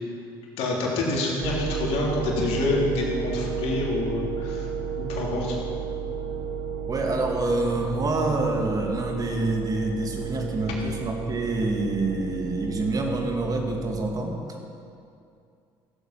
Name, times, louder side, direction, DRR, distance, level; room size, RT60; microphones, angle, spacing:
voice 1, 0.6-4.7 5.0-5.5, left 2 dB, 70° left, -3 dB, 3.2 m, -27 dB
Revelation and Awe, 1.4-14.1, right 6 dB, 55° right, 2.3 m, -32 dB
voice 2, 6.9-14.4, right 2 dB, 35° right, 2 dB, 2.3 m, -27 dB
15.0 x 8.0 x 5.8 m, 2.5 s
supercardioid pair, 75°, 11 cm